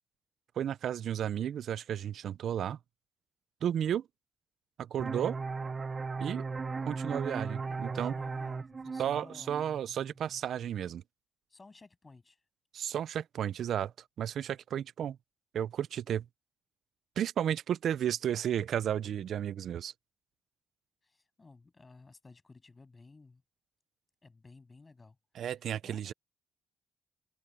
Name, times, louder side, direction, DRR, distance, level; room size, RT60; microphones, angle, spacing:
voice 1, 0.6-2.8 3.6-4.1 4.8-5.4 6.2-6.4 6.8-8.2 9.0-11.0 12.7-15.2 15.5-16.3 17.2-19.9 25.4-26.1, right 9 dB, 65° right, 0.6 m, -33 dB
sound 1, 5.0-10.4, right 4 dB, 30° right, 0.7 m, -37 dB
voice 2, 7.6-9.5 11.5-12.4 21.0-23.4 24.2-25.2 25.8-26.1, left 3 dB, 25° left, 7.8 m, -55 dB
cardioid pair, 90°, 0 cm